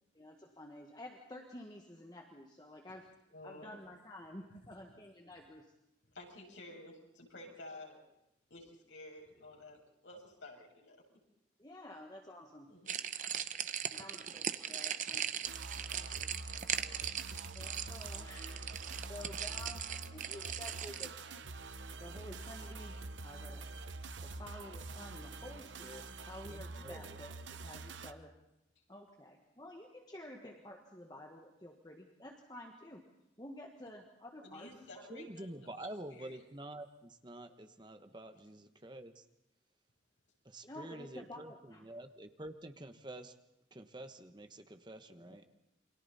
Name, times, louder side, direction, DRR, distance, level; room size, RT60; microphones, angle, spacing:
voice 1, 0.1-3.1 3.4-5.7 11.6-12.7 13.9-15.5 17.5-21.2 22.0-23.8 24.2-27.3 27.6-28.3 28.9-33.1 33.4-35.1 40.6-41.9, left 1 dB, 20° left, 2 dB, 1.6 m, -51 dB
voice 2, 3.3-3.9 6.1-8.0 8.5-11.0 12.7-13.0 14.2-14.3 28.0-28.1 34.4-36.4, left 2 dB, 85° left, 0 dB, 6.9 m, -52 dB
sound 1, 12.9-21.1, right 9 dB, 40° right, 0.8 m, -39 dB
sound 2, 15.5-28.1, right 3 dB, 80° right, 1.0 m, -46 dB
voice 3, 26.5-27.2 27.6-27.8 35.1-39.2 40.4-43.3 43.7-45.4, right 1 dB, 25° right, 8 dB, 1.2 m, -48 dB
29.0 x 23.5 x 4.2 m, 0.86 s
head